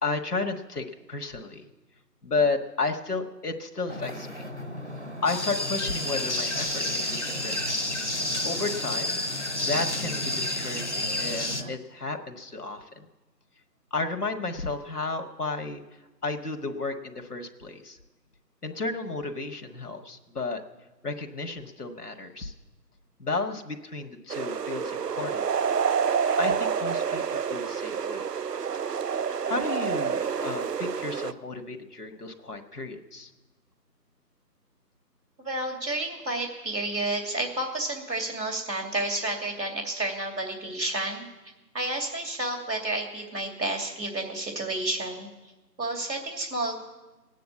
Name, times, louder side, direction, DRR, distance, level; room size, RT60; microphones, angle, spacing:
voice 1, 0.0-1.6 2.2-4.4 5.2-7.9 8.4-9.2 9.7-13.0 13.9-15.8 16.2-18.0 18.6-20.6 21.0-22.5 23.2-25.4 26.4-28.2 29.4-33.3, left 3 dB, 65° left, 4 dB, 1.6 m, -32 dB
Wind / Ocean, 3.9-11.7, equal, 45° right, 0.9 m, -38 dB
sound 1, 5.3-11.6, left 1 dB, 45° left, 1.0 m, -30 dB
sound 2, 24.3-31.3, right 7 dB, 75° right, 0.6 m, -28 dB
voice 2, 35.4-41.3 41.7-45.3 45.8-46.8, right 2 dB, 90° right, 2 dB, 2.9 m, -30 dB
18.0 x 9.3 x 8.4 m, 1.1 s
figure-of-eight pair, 180°, 49 cm